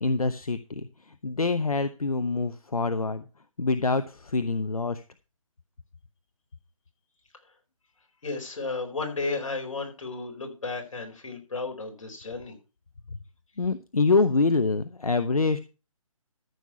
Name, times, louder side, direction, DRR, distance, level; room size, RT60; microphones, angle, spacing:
voice 1, 0.0-3.2 3.6-5.0 13.6-15.6, left 3 dB, 85° left, 12 dB, 0.9 m, -25 dB
voice 2, 8.2-12.6, left 3 dB, 60° left, 3 dB, 4.3 m, -33 dB
14.0 x 6.5 x 5.6 m, 0.33 s
figure-of-eight pair, 145°, 18 cm